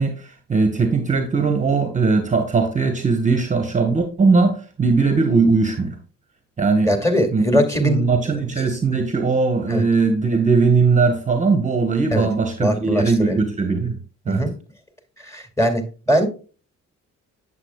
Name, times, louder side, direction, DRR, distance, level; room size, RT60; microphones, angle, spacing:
voice 1, 0.0-6.0 6.6-6.9 7.3-7.4 7.7-14.0 14.3-14.5, right 4 dB, 25° right, 1.1 m, -19 dB
voice 2, 6.9-8.0 9.7-9.9 12.1-12.3 12.6-13.4 14.3-14.5 15.2-16.3, equal, 10° left, 2.3 m, -21 dB
8.3 x 7.4 x 2.2 m
cardioid pair, 90°, 30 cm